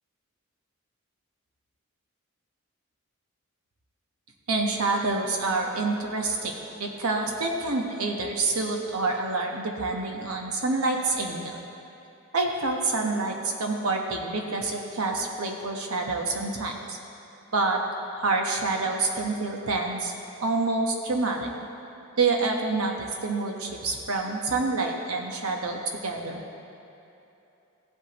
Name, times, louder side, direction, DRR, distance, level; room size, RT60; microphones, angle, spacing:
voice 1, 4.5-6.5 6.8-11.6 12.3-17.0 17.5-17.8 18.1-20.1 20.4-21.5 22.2-26.4, right 3 dB, 85° right, 1 dB, 1.2 m, -27 dB
15.0 x 8.1 x 3.0 m, 2.9 s
head